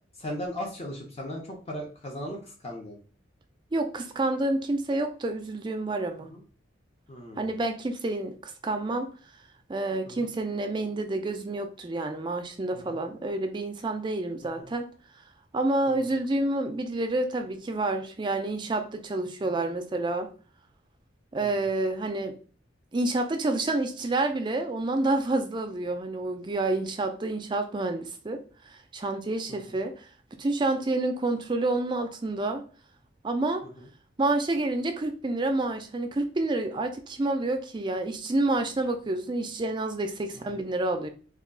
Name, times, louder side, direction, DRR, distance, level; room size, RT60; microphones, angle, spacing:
voice 1, 0.2-3.0 6.3-6.4 7.1-7.6 10.1-10.3 12.7-13.0 14.6-14.7 15.9-16.0 21.4-21.5 29.5-29.8 40.3-40.6, equal, 30° left, 0.6 m, -38 dB
voice 2, 3.7-6.3 7.4-9.1 9.7-14.9 15.5-20.3 21.3-22.4 22.9-30.1 30.4-32.6 33.2-33.7 34.2-41.1, right 2 dB, 25° right, 0.3 m, -28 dB
2.3 x 2.2 x 3.6 m
head